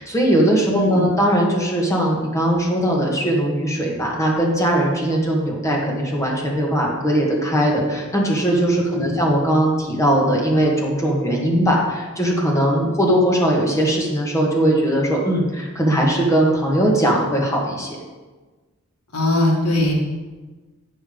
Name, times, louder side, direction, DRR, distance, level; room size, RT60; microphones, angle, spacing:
voice 1, 0.0-18.0, right 1 dB, 15° left, -2 dB, 1.6 m, -19 dB
voice 2, 0.7-1.1 8.9-9.1 19.1-19.9, left 1 dB, 80° left, 0 dB, 1.8 m, -20 dB
8.7 x 5.5 x 5.1 m, 1.3 s
head